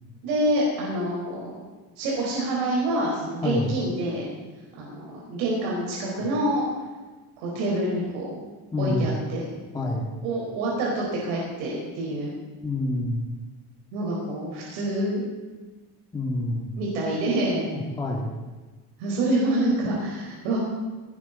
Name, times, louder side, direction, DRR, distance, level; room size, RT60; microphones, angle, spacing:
voice 1, 0.2-1.5 2.0-4.3 4.8-6.6 7.4-8.3 8.8-9.4 10.2-12.3 13.9-15.2 16.8-17.6 19.0-20.6, right 1 dB, 80° right, -3 dB, 4.8 m, -26 dB
voice 2, 8.7-9.1 9.7-10.1 12.6-13.3 16.1-16.7 17.6-18.3, left 2 dB, 10° left, -3 dB, 1.8 m, -27 dB
18.5 x 17.5 x 4.1 m, 1.3 s
cardioid pair, 155°, 44 cm